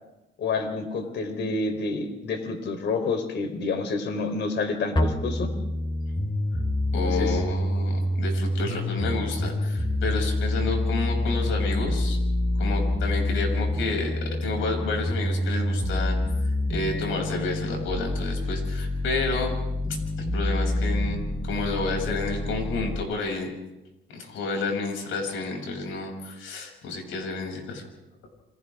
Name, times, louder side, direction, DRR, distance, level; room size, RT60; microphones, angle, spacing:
voice 1, 0.4-5.5 7.0-7.4, left 3 dB, 65° left, 6 dB, 4.0 m, -29 dB
sound 1, 4.9-22.9, left 1 dB, 25° left, 4.7 m, -27 dB
voice 2, 6.9-12.2 12.6-19.6 20.3-21.2 21.4-23.5 24.1-27.8, left 3 dB, 85° left, 2 dB, 7.3 m, -30 dB
29.0 x 25.5 x 3.7 m, 0.96 s
cardioid pair, 90°, 20 cm